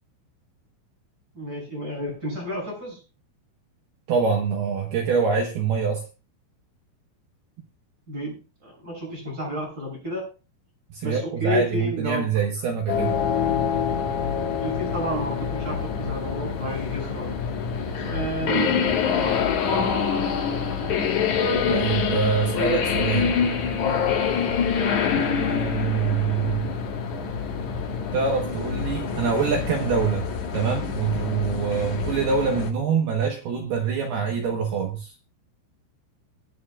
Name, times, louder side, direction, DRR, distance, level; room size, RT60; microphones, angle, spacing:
voice 1, 1.3-3.0 8.1-8.3 8.6-10.2 11.0-12.2 14.6-17.3 18.0-18.7 19.2-19.5, equal, 15° right, -2 dB, 6.9 m, -31 dB
voice 2, 4.1-6.0 10.9-13.2 21.7-23.5 25.1-26.7 28.1-35.2, right 6 dB, 70° right, 2 dB, 2.5 m, -25 dB
sound 1, 12.9-32.7, left 6 dB, 75° left, 1.7 m, -26 dB
23.0 x 9.5 x 2.4 m, 0.31 s
omnidirectional pair, 5.9 m